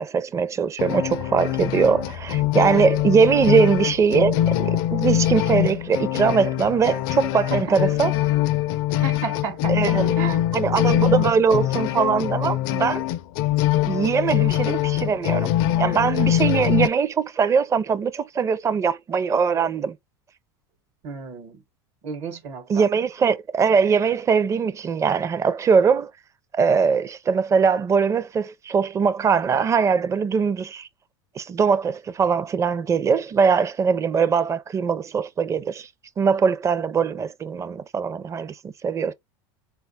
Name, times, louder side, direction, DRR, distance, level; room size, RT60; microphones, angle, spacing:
voice 1, 0.0-8.1 9.7-10.1 10.5-13.0 13.9-20.0 22.7-26.1 26.5-30.9 31.4-35.9 36.2-39.1, right 6 dB, 25° right, 0.5 m, -21 dB
sound 1, 0.8-16.9, left 13 dB, 65° left, 0.5 m, -23 dB
voice 2, 8.9-10.4 21.0-21.6 22.0-22.8, right 5 dB, 60° right, 1.0 m, -33 dB
4.0 x 2.3 x 3.9 m
supercardioid pair, 105°, 13 cm